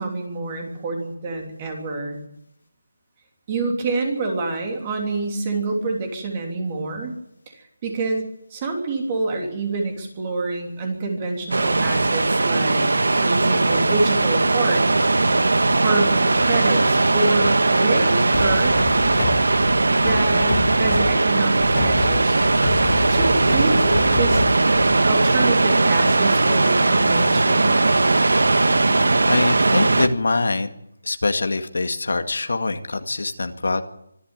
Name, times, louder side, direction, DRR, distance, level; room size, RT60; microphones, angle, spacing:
voice 1, 0.0-2.2 3.5-7.1 7.8-8.2 8.5-12.9 13.2-14.8 15.7-18.7 19.9-22.4 23.1-24.5 25.1-27.8, right 3 dB, 15° right, 2 dB, 3.3 m, -26 dB
sound 1, 11.5-30.1, right 2 dB, 90° right, 1.7 m, -19 dB
sound 2, 18.3-25.1, left 4 dB, 30° left, 1.9 m, -28 dB
voice 2, 29.3-30.7 31.0-33.8, left 3 dB, 70° left, 7 dB, 2.1 m, -23 dB
25.0 x 12.5 x 9.2 m, 0.78 s
hypercardioid pair, 180°, 0 cm